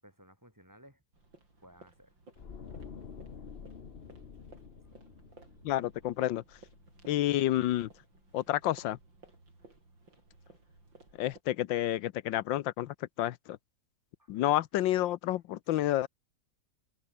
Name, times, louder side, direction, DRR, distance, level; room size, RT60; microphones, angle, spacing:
voice 1, 0.0-1.0 1.6-2.1 2.8-3.0 4.8-4.9 6.9-7.0 10.8-10.9 14.2-14.4, equal, 10° right, 7.0 m, -59 dB
sound 1, 1.1-11.4, right 2 dB, 90° right, 7.7 m, -58 dB
sound 2, 2.4-7.4 7.7-8.0, left 6 dB, 35° left, 1.3 m, -49 dB
voice 2, 5.6-6.4 7.1-7.9 8.3-9.0 11.2-13.6 14.3-16.1, left 14 dB, 85° left, 1.5 m, -29 dB
omnidirectional pair, 2.0 m